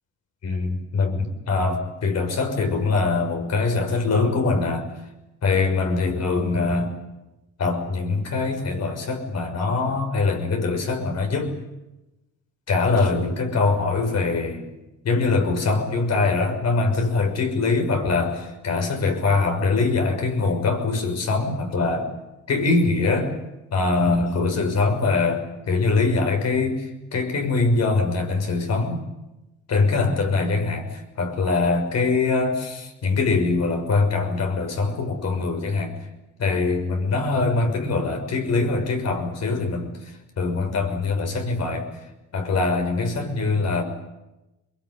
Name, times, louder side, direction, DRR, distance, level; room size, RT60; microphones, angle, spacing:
voice 1, 0.4-4.9 5.4-6.9 7.6-11.5 12.7-14.7 15.0-22.1 22.5-23.3 23.7-29.0 29.7-35.9 36.4-41.9 42.3-43.8, left 3 dB, 60° left, 4 dB, 6.3 m, -23 dB
22.5 x 22.5 x 9.8 m, 0.99 s
cardioid pair, 90°, 30 cm